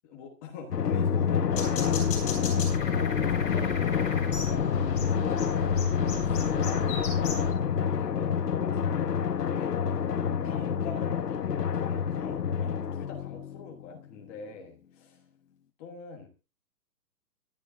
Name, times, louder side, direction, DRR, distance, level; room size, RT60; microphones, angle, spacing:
voice 1, 0.0-2.6 2.8-5.5 6.2-7.5 7.9-9.9 10.4-11.4 11.7-15.2 15.8-16.3, left 5 dB, 10° left, 2 dB, 1.1 m, -44 dB
Drum, 0.7-13.8, left 7 dB, 70° left, 1.5 m, -28 dB
sound 1, 1.5-7.5, left 4 dB, 35° left, 7.9 m, -34 dB
25.5 x 11.0 x 2.6 m, 0.32 s
hypercardioid pair, 180°, 49 cm